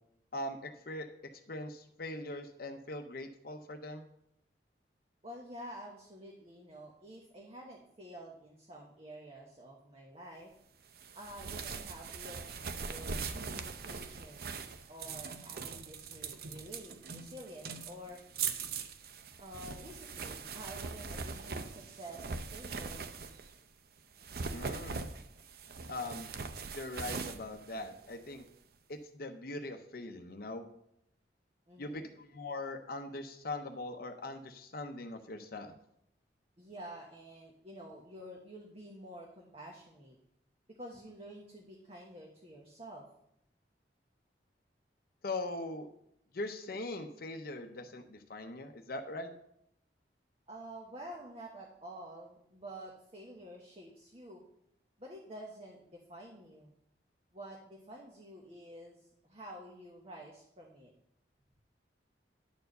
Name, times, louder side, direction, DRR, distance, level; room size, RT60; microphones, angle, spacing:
voice 1, 0.3-1.1 1.5-4.1 24.5-25.0 25.9-26.3 26.7-28.4 28.9-30.6 31.8-35.7 45.2-45.9 46.3-49.3, left 2 dB, 55° left, 6 dB, 0.7 m, -41 dB
voice 2, 5.2-10.5 11.1-14.5 14.9-18.2 19.4-23.1 31.7-32.1 36.6-40.2 40.7-43.1 50.5-54.4 55.0-56.7 57.3-60.9, right 1 dB, 35° right, -1 dB, 1.2 m, -49 dB
sound 1, 11.0-23.6 24.1-28.4, right 5 dB, 60° right, 0.6 m, -41 dB
10.5 x 4.6 x 6.6 m, 0.74 s
head